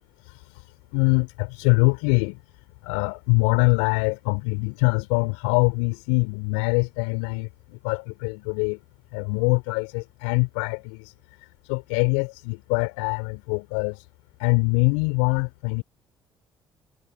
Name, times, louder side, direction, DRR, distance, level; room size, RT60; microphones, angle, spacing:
voice 1, 0.2-0.6 0.9-2.4 2.8-8.8 9.1-11.1 11.6-14.1 14.4-15.8, left 36 dB, 70° left, 5.0 m, -24 dB
figure-of-eight pair, 50°, 11 cm